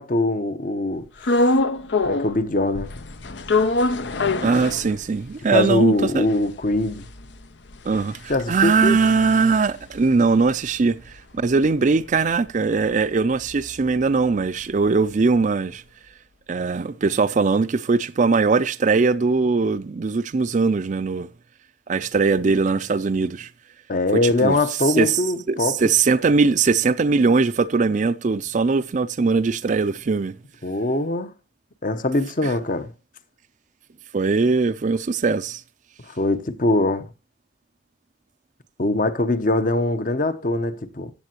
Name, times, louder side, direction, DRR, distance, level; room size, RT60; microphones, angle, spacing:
voice 1, 0.0-1.6 2.0-2.9 5.5-7.0 8.3-9.0 23.9-25.8 30.6-31.3 31.8-32.9 36.1-37.1 38.8-41.1, left 2 dB, 50° left, 0.9 m, -22 dB
sound 1, 1.2-2.4 2.7-5.3 5.7-5.8 6.0-10.5 10.8-14.9, left 2 dB, 80° left, 0.8 m, -26 dB
voice 2, 4.4-6.3 7.8-15.8 16.5-21.3 21.9-23.5 24.2-24.6 24.9-25.2 25.5-30.4 32.4-32.5 34.1-35.6, right 4 dB, 45° right, 0.4 m, -20 dB
15.5 x 7.6 x 2.9 m
head